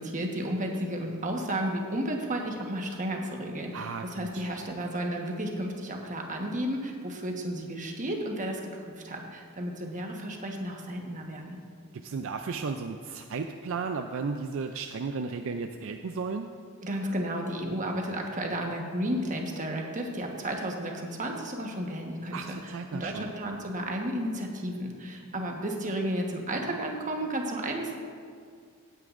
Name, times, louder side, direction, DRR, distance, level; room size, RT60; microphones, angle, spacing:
voice 1, 0.0-11.6 16.8-27.9, right 1 dB, 35° right, 1 dB, 1.3 m, -33 dB
voice 2, 3.7-4.4 12.0-16.5 22.3-23.3, right 4 dB, 65° right, 6 dB, 0.4 m, -34 dB
16.0 x 9.4 x 2.5 m, 2.2 s
head